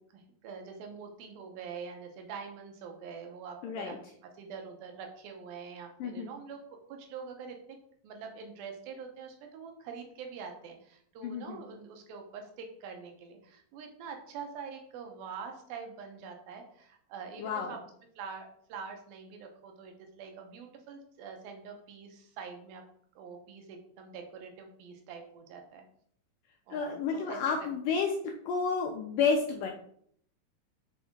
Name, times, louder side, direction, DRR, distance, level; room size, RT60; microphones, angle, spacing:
voice 1, 0.0-4.0 4.3-6.6 6.9-7.8 8.0-17.8 18.2-22.8 23.2-25.8 26.7-27.7, right 6 dB, 75° right, 4 dB, 2.6 m, -45 dB
voice 2, 3.6-4.0 6.0-6.3 11.2-11.6 17.4-17.7 26.7-28.1 28.5-29.7, left 5 dB, 90° left, 2 dB, 1.9 m, -30 dB
5.4 x 5.2 x 3.6 m, 0.64 s
omnidirectional pair, 4.4 m